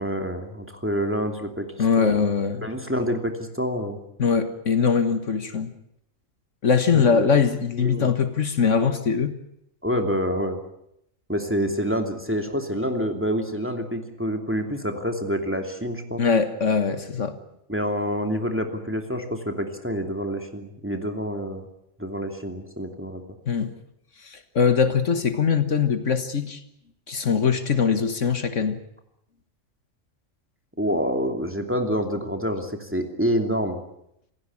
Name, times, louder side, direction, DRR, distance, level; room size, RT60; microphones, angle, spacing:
voice 1, 0.0-1.7 2.0-2.2 2.6-4.0 6.9-7.3 7.7-8.1 9.8-10.6 11.3-16.2 17.7-21.7 22.0-23.2 30.8-33.8, equal, 10° right, 4 dB, 2.8 m, -27 dB
voice 2, 1.8-2.7 4.2-5.7 6.6-9.4 16.2-17.4 23.5-23.7 24.2-26.6 27.1-28.8, left 6 dB, 65° left, 10 dB, 1.8 m, -22 dB
27.5 x 16.0 x 8.6 m, 0.77 s
omnidirectional pair, 1.4 m